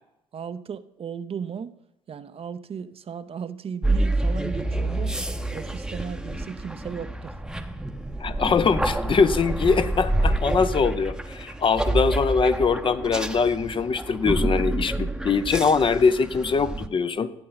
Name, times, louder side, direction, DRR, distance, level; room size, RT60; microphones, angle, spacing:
voice 1, 0.3-1.7 2.1-5.2 5.5-7.4, right 7 dB, 40° right, 12 dB, 0.7 m, -36 dB
sound 1, 3.8-16.9, right 2 dB, 5° right, 0.9 m, -28 dB
voice 2, 8.2-17.3, left 5 dB, 35° left, 12 dB, 0.7 m, -22 dB
15.0 x 8.5 x 4.0 m, 0.85 s
hypercardioid pair, 60°, 15 cm